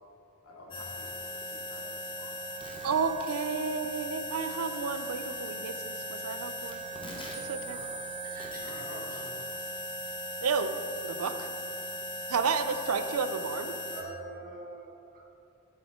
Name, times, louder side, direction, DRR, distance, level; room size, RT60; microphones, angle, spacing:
voice 1, 0.4-2.4 7.5-8.2 8.5-9.4, left 1 dB, 80° left, -2 dB, 2.0 m, -50 dB
sound 1, 0.7-14.0, equal, 25° left, 1.2 m, -38 dB
voice 2, 2.8-6.8 7.1-7.2 7.5-7.8 10.4-10.7 11.0-11.5 12.3-13.7, right 5 dB, 75° right, 10 dB, 0.5 m, -31 dB
voice 3, 8.2-9.2 13.9-15.3, right 2 dB, 45° right, -1 dB, 1.5 m, -45 dB
10.5 x 8.6 x 3.6 m, 2.7 s
head